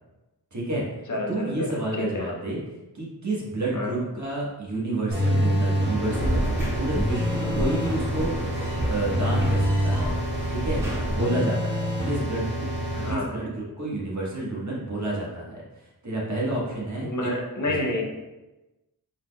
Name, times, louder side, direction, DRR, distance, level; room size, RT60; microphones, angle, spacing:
voice 1, 0.5-0.8 1.3-2.6 2.9-8.5 8.8-10.2 10.5-10.8 11.1-15.6 16.0-17.3 17.6-18.0, right 2 dB, 45° right, -5 dB, 1.4 m, -30 dB
voice 2, 1.1-2.3 3.7-4.0 12.9-13.3 17.0-18.0, left 2 dB, 50° left, 0 dB, 0.7 m, -29 dB
sound 1, 5.1-13.1, equal, 30° right, 1.3 m, -26 dB
sound 2, 6.1-11.2, right 1 dB, 5° right, 1.4 m, -30 dB
4.4 x 3.9 x 2.3 m, 1.1 s
wide cardioid pair, 75°, 39 cm